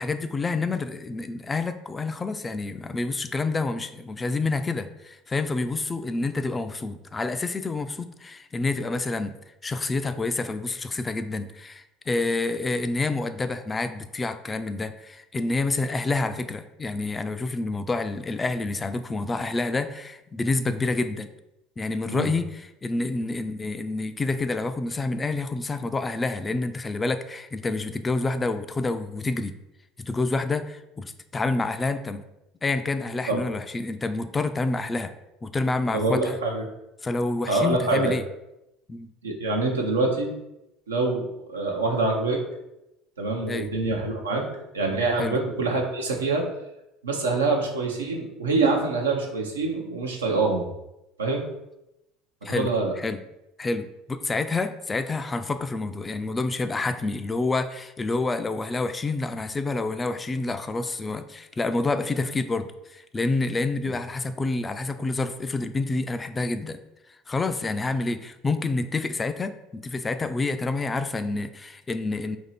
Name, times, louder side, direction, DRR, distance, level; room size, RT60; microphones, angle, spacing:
voice 1, 0.0-9.4 9.6-21.3 21.8-29.6 30.0-32.2 32.6-35.1 35.4-36.4 37.0-38.2 38.9-39.1 43.5-43.7 45.2-45.4 52.4-52.7 53.0-53.2 53.6-66.8 67.3-72.4, left 3 dB, 25° left, 10 dB, 0.3 m, -28 dB
voice 2, 35.9-36.6 37.5-38.1 39.2-40.3 40.9-42.4 43.2-44.5 44.7-46.4 47.0-50.7 51.2-51.4 52.5-52.9, right 3 dB, 90° right, 0 dB, 0.6 m, -25 dB
2.9 x 2.7 x 4.1 m, 0.89 s
hypercardioid pair, 70°, 0 cm